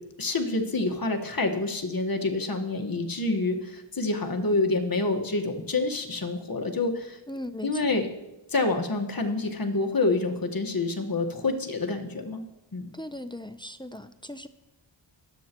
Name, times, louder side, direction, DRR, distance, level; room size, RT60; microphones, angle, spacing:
voice 1, 0.2-7.2 7.6-8.1 8.5-12.4 12.7-12.9, left 3 dB, 50° left, 3 dB, 1.5 m, -27 dB
voice 2, 7.3-8.0 12.9-14.5, left 1 dB, 10° left, 10 dB, 0.6 m, -38 dB
22.5 x 8.0 x 3.0 m, 0.97 s
cardioid pair, 45°, 45 cm